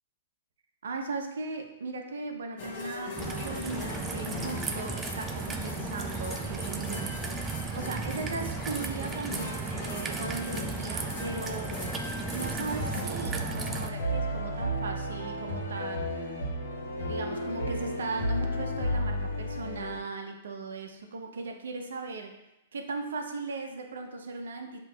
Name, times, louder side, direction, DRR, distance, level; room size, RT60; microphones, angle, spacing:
voice 1, 0.8-11.7 12.3-16.4 17.1-22.4 22.7-24.8, right 3 dB, 80° right, 3 dB, 0.7 m, -38 dB
sound 1, 2.6-13.0, left 4 dB, 60° left, 0.8 m, -40 dB
Raindrop / Trickle dribble, 3.2-13.9, right 4 dB, 15° right, 0.4 m, -35 dB
sound 2, 12.8-20.0, equal, 80° left, 1.1 m, -32 dB
7.2 x 2.9 x 2.3 m, 0.91 s
hypercardioid pair, 135°, 0 cm